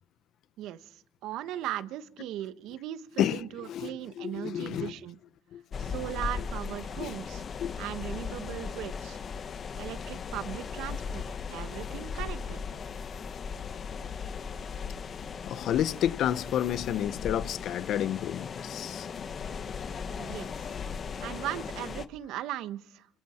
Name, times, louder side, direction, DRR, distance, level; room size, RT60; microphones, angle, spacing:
voice 1, 0.6-5.2 5.8-7.4 7.8-9.2 9.8-11.2 11.5-12.6 20.2-20.7 21.2-23.1, right 13 dB, 75° right, 1.3 m, -38 dB
voice 2, 3.7-4.9 5.5-6.0 7.0-7.1 7.6-7.7 15.4-19.1, left 10 dB, 65° left, 1.1 m, -30 dB
sound 1, 5.7-22.1, left 6 dB, 45° left, 1.5 m, -37 dB
26.5 x 23.5 x 4.5 m
supercardioid pair, 80°, 0 cm